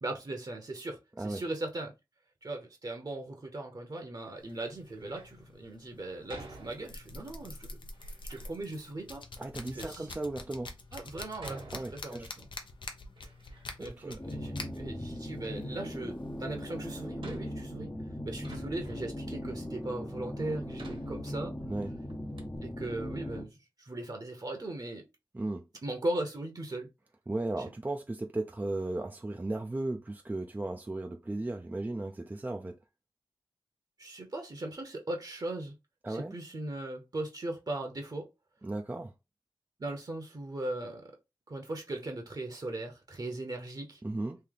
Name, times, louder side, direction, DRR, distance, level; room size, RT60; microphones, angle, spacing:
voice 1, 0.0-1.9 2.4-7.8 8.3-9.2 9.7-10.1 10.9-12.5 13.8-17.9 18.2-21.5 22.6-25.0 25.8-26.9 27.6-27.7 34.0-35.7 36.1-38.3 39.8-41.0 41.5-44.0, right 2 dB, 45° right, 1.0 m, -38 dB
sound 1, 4.4-17.0, left 3 dB, 70° left, 0.7 m, -47 dB
Door, 4.9-5.4 6.3-7.3 7.9-8.6 9.3-9.4 10.1-10.2 11.4-12.5 12.9-13.9 14.2-15.1 16.4-16.5 17.2-19.2 19.8-19.9 20.8-21.8 22.1-22.2 22.4-22.6, right 2 dB, 80° right, 1.5 m, -50 dB
voice 2, 9.4-10.7 11.7-12.3 13.8-14.2 21.7-21.9 25.3-25.6 27.3-32.8 36.0-36.3 38.6-39.1 44.0-44.4, right 2 dB, 20° right, 0.5 m, -35 dB
sound 2, 14.2-23.4, left 1 dB, 20° left, 0.7 m, -39 dB
3.3 x 2.7 x 3.8 m
wide cardioid pair, 80°, 9 cm